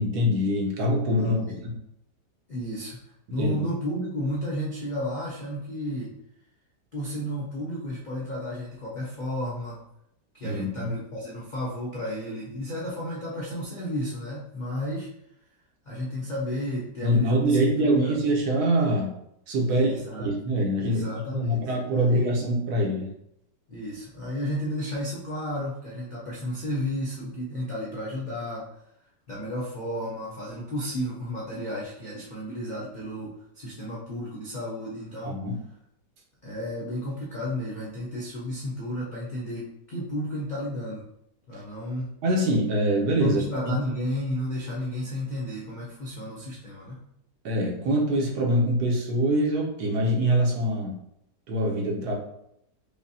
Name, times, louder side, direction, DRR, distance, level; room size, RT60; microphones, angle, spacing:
voice 1, 0.0-1.4 3.4-3.6 10.4-10.9 17.0-19.1 19.5-23.1 35.2-35.6 42.2-43.7 47.4-51.0 51.5-52.1, right 1 dB, 65° right, 0 dB, 1.2 m, -24 dB
voice 2, 1.2-1.6 2.5-3.0 3.3-6.1 6.9-9.8 10.3-15.1 15.9-18.1 19.7-20.3 20.8-21.6 22.0-22.3 23.7-28.6 29.3-35.4 36.4-41.0 41.5-42.1 43.2-47.0, equal, 85° left, -6 dB, 0.4 m, -32 dB
5.0 x 2.1 x 2.7 m, 0.77 s
omnidirectional pair, 1.9 m